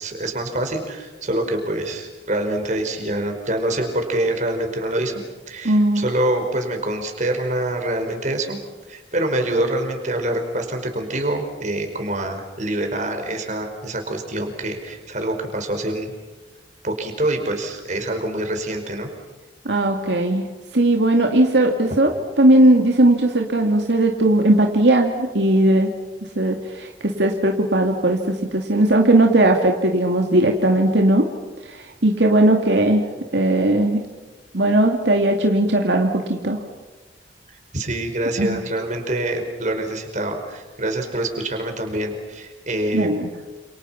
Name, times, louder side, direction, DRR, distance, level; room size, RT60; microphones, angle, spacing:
voice 1, 0.0-5.1 5.5-8.6 8.9-16.1 16.8-19.1 37.7-43.2, right 1 dB, 45° right, 5 dB, 5.1 m, -25 dB
voice 2, 5.6-6.1 19.6-20.5 20.7-25.9 26.4-31.3 31.7-33.0 33.3-34.0 34.5-36.6 38.4-38.6 42.9-43.3, right 1 dB, 80° right, 2 dB, 2.4 m, -18 dB
29.5 x 28.5 x 5.9 m, 1.2 s
head